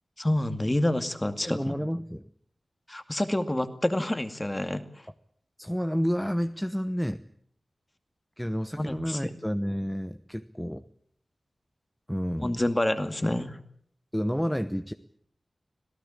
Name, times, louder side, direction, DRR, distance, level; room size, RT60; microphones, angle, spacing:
voice 1, 0.2-1.7 2.9-4.8 8.8-9.2 12.4-13.6, left 1 dB, 20° left, 9 dB, 2.3 m, -28 dB
voice 2, 1.4-2.2 5.6-7.2 8.4-10.8 12.1-12.6 14.1-14.9, equal, 5° left, 9 dB, 1.0 m, -30 dB
26.0 x 17.5 x 8.8 m, 0.65 s
wide cardioid pair, 80°, 0 cm